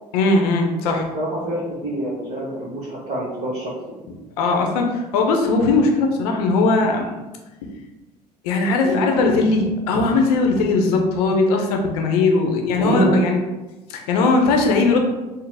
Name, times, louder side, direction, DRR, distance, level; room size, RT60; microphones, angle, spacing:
voice 1, 0.1-1.1 4.4-7.2 8.4-13.4 13.9-15.0, left 3 dB, 70° left, 2 dB, 0.7 m, -19 dB
voice 2, 0.8-3.7 6.8-6.9 8.8-9.0 12.4-13.2, equal, 35° right, -8 dB, 1.1 m, -26 dB
4.2 x 2.0 x 3.3 m, 1.1 s
figure-of-eight pair, 60°, 20 cm